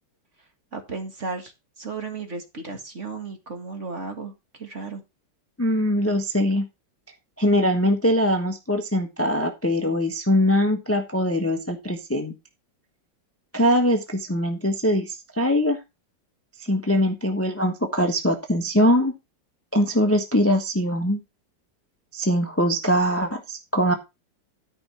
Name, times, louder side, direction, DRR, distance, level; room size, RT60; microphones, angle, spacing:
voice 1, 0.7-1.5 1.8-4.3 4.6-5.0, right 4 dB, 40° right, 5 dB, 2.2 m, -34 dB
voice 2, 5.6-6.6 7.4-12.3 13.5-15.8 16.6-19.1 19.7-21.2 22.1-23.9, equal, 10° left, 5 dB, 1.0 m, -22 dB
13.0 x 5.3 x 4.3 m, 0.24 s
omnidirectional pair, 2.0 m